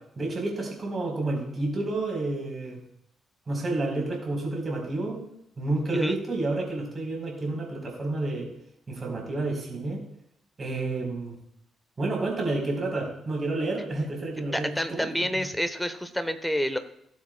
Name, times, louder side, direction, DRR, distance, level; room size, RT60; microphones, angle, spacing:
voice 1, 0.2-2.8 3.5-5.2 5.6-8.5 8.9-10.0 10.6-11.4 12.0-15.1 15.4-15.5, right 2 dB, 35° right, 0 dB, 4.3 m, -30 dB
voice 2, 14.5-16.8, equal, 5° left, 10 dB, 1.1 m, -28 dB
18.0 x 7.4 x 2.4 m, 0.74 s
figure-of-eight pair, 40°, 0 cm